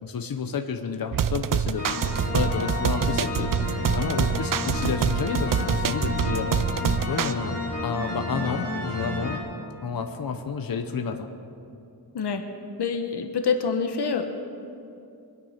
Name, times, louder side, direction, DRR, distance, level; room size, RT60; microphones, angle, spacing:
voice 1, 0.0-6.5 7.1-9.4 9.8-11.3, left 5 dB, 55° left, 6 dB, 1.0 m, -30 dB
sound 1, 1.1-7.3, right 8 dB, 55° right, 0.5 m, -26 dB
sound 2, 1.8-9.4, left 3 dB, 35° left, 3.2 m, -31 dB
voice 2, 12.8-14.3, left 5 dB, 75° left, 6 dB, 1.1 m, -26 dB
24.0 x 9.8 x 5.8 m, 2.6 s
wide cardioid pair, 155°, 41 cm